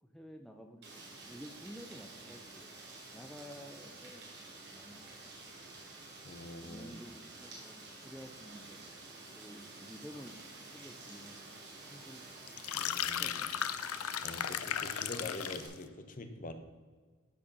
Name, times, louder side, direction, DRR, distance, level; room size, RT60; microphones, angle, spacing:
voice 1, 0.0-2.7 3.1-5.6 6.6-8.8 9.3-10.4 10.7-11.5 11.9-12.4 13.2-13.5, equal, ahead, 3 dB, 0.5 m, -52 dB
Rain, 0.8-15.7, right 2 dB, 50° right, 2.7 m, -50 dB
voice 2, 6.2-6.9 12.7-13.5 14.2-16.5, left 2 dB, 35° left, 8 dB, 0.9 m, -45 dB
sound 1, 12.5-15.7, left 10 dB, 80° left, 0.5 m, -36 dB
12.5 x 4.9 x 5.5 m, 1.5 s
head